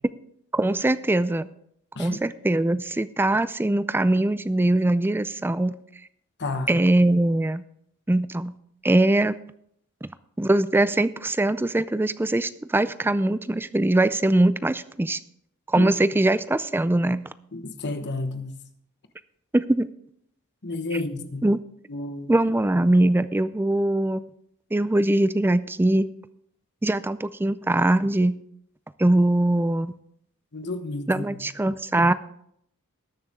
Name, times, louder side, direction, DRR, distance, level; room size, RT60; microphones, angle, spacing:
voice 1, 0.5-1.5 2.0-5.8 6.7-7.6 8.1-8.5 8.8-9.4 10.0-10.1 10.4-15.2 15.7-17.2 19.5-19.9 21.4-21.6 22.3-24.2 24.7-26.1 26.8-28.4 29.0-29.9 31.1-32.1, right 1 dB, 10° right, 15 dB, 0.4 m, -22 dB
voice 2, 17.5-18.6 20.6-21.5 21.9-22.3 30.5-31.5, left 2 dB, 50° left, 8 dB, 1.1 m, -31 dB
19.5 x 6.8 x 3.7 m, 0.72 s
head